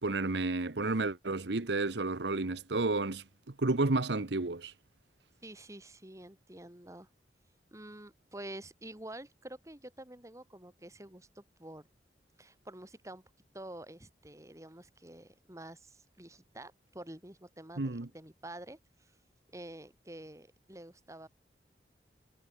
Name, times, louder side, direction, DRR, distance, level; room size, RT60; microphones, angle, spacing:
voice 1, 0.0-3.2 3.6-4.7 17.8-18.1, right 2 dB, 75° right, 1.1 m, -31 dB
voice 2, 5.4-7.1 7.7-11.9 12.4-13.2 13.5-19.1 19.5-21.3, right 1 dB, 20° right, 3.2 m, -48 dB
head